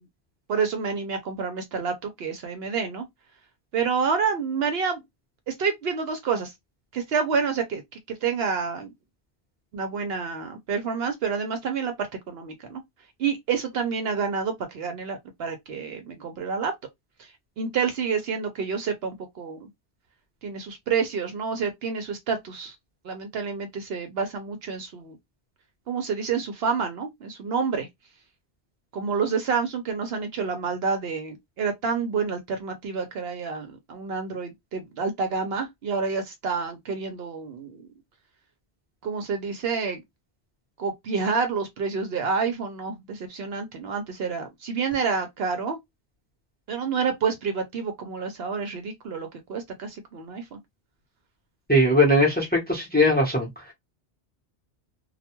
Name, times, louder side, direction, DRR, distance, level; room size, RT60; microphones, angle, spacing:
voice 1, 0.5-3.1 3.7-5.0 5.5-6.5 6.9-7.8 8.1-8.9 9.7-12.8 13.2-16.7 17.6-19.7 20.4-22.7 23.0-25.2 25.9-27.9 28.9-37.9 39.0-40.0 40.8-45.8 46.7-50.6, right 5 dB, 65° right, 0.8 m, -28 dB
voice 2, 51.7-53.5, left 1 dB, 10° left, 0.8 m, -20 dB
2.2 x 2.2 x 2.8 m
omnidirectional pair, 1.2 m